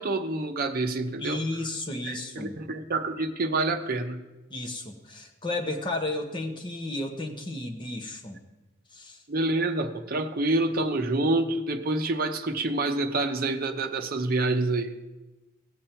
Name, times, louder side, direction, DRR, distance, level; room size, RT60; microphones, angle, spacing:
voice 1, 0.0-1.4 2.1-4.2 9.3-15.0, right 2 dB, 45° right, 0.8 m, -27 dB
voice 2, 1.2-2.6 4.5-8.4 8.9-9.2, left 2 dB, 25° left, 1.2 m, -33 dB
17.5 x 7.4 x 4.4 m
head